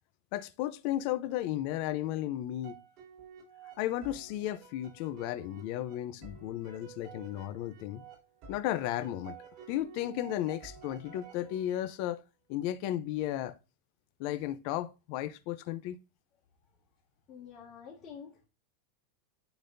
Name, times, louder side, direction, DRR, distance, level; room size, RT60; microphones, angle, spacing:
voice 1, 0.3-2.8 3.8-8.0 8.5-9.4 9.7-12.2 12.5-13.6 14.2-16.0, left 13 dB, 45° left, 0.5 m, -34 dB
sound 1, 2.6-11.9, right 6 dB, 40° right, 3.6 m, -52 dB
voice 2, 17.3-18.4, left 7 dB, 25° left, 2.0 m, -48 dB
9.9 x 4.1 x 2.6 m
supercardioid pair, 170°, 0 cm